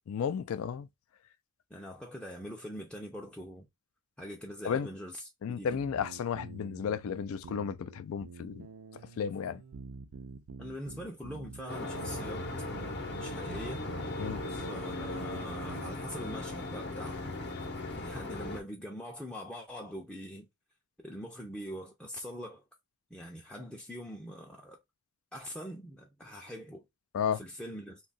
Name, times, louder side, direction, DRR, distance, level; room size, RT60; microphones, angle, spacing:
voice 1, 0.1-0.9 4.6-4.9 5.4-8.7 9.2-9.6 14.2-14.4 27.1-27.4, left 7 dB, 75° left, 0.3 m, -33 dB
voice 2, 1.7-3.7 4.2-5.7 10.6-13.9 14.5-17.3 17.9-20.5 21.0-22.6 23.1-24.8 25.3-26.9 27.3-28.0, equal, 5° left, 0.4 m, -43 dB
sound 1, 5.7-15.9, right 5 dB, 80° right, 0.5 m, -47 dB
sound 2, 11.7-18.6, left 2 dB, 55° left, 0.7 m, -38 dB
2.7 x 2.3 x 3.8 m
head